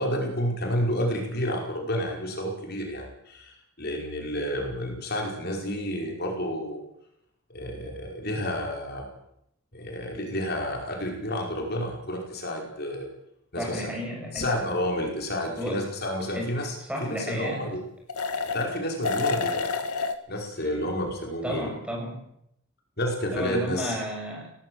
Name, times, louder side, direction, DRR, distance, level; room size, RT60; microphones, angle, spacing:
voice 1, 0.0-6.8 7.5-9.1 9.7-13.1 13.5-13.9 14.3-17.8 18.5-19.7 20.3-21.7 23.0-23.9, equal, 45° left, 1 dB, 5.2 m, -30 dB
voice 2, 13.6-14.5 15.6-15.8 16.3-17.7 21.4-22.2 23.3-24.5, equal, 5° right, -1 dB, 7.4 m, -33 dB
sound 1, 14.4-14.5 18.1-18.8 19.0-20.2, left 4 dB, 90° left, 2.2 m, -28 dB
25.0 x 18.0 x 7.9 m, 0.76 s
head